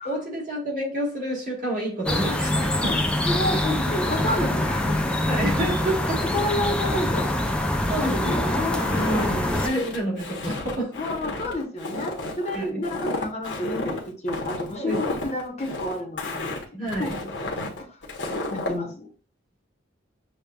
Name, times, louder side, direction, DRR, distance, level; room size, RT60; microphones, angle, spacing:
voice 1, 0.0-3.0 5.3-6.2 7.9-8.5 9.0-11.0 12.5-12.8 14.8-15.3 16.7-17.2, right 1 dB, 45° right, 1.7 m, -29 dB
sound 1, 2.1-9.7, left 1 dB, 5° left, 0.4 m, -25 dB
voice 2, 3.3-5.0 6.3-7.3 8.0-9.7 10.9-16.5 17.0-17.1 18.5-19.1, left 1 dB, 35° left, 0.8 m, -29 dB
Walk footsteps, 8.8-18.8, left 2 dB, 65° left, 0.9 m, -32 dB
6.7 x 2.3 x 2.3 m
head